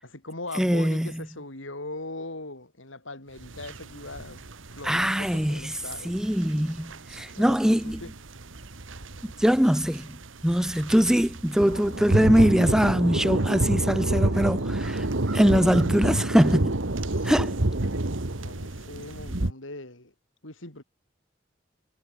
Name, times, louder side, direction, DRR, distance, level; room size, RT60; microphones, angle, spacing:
voice 1, 0.0-6.2 7.3-8.1 11.0-11.2 14.2-14.9 17.1-17.3 18.4-20.1 20.4-20.8, left 2 dB, 90° left, 7.1 m, -40 dB
voice 2, 0.5-1.2 4.8-5.8 6.0-8.0 9.2-10.1 10.4-15.1 15.3-16.8 17.2-17.5, equal, 5° right, 0.4 m, -22 dB
sound 1, 3.4-19.5, right 1 dB, 90° right, 1.8 m, -29 dB
head